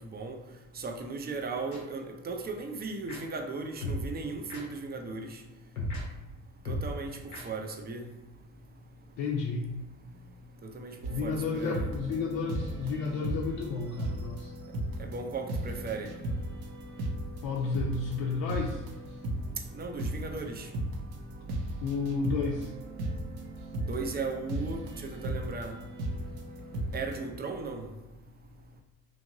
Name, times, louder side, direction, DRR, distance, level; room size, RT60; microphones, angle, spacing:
voice 1, 0.8-5.4 6.7-7.2 7.4-8.0 10.7-10.9 11.2-11.9 15.1-16.1 19.7-20.7 23.9-25.7 26.9-27.9, right 4 dB, 20° right, 4 dB, 0.4 m, -36 dB
sound 1, 1.7-1.8 3.1-3.2 3.8-4.0 4.5-4.6 5.8-6.0 6.7-6.9 7.3-7.4, left 1 dB, 90° left, 0.7 m, -34 dB
voice 2, 9.2-9.7 11.1-14.5 17.4-18.8 21.8-22.7, left 4 dB, 55° left, -1 dB, 0.5 m, -31 dB
sound 2, 11.0-27.3, right 1 dB, 70° right, 0.6 m, -37 dB
2.9 x 2.6 x 2.6 m, 1.1 s
hypercardioid pair, 50°, 45 cm